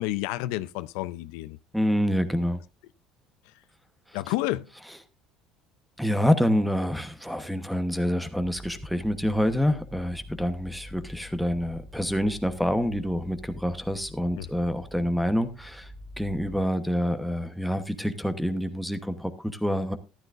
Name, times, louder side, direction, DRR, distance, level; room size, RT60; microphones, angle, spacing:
voice 1, 0.0-1.6 4.1-4.7 14.4-14.5, left 16 dB, 90° left, 0.5 m, -30 dB
voice 2, 1.7-2.6 6.0-20.0, equal, ahead, 1.0 m, -27 dB
sound 1, 8.4-16.6, left 1 dB, 30° right, 1.7 m, -46 dB
13.5 x 12.0 x 2.6 m
cardioid pair, 145°, 0 cm